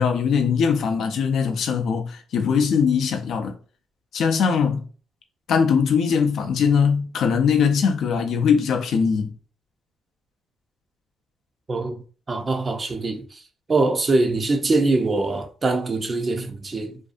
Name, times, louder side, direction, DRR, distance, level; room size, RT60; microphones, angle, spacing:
voice 1, 0.0-3.6 4.1-4.9 5.5-9.3, left 6 dB, 70° left, 0.4 m, -21 dB
voice 2, 11.7-12.0 12.3-13.4 13.7-17.0, right 3 dB, 35° right, 0.5 m, -23 dB
2.6 x 2.3 x 2.4 m
cardioid pair, 90°, 0 cm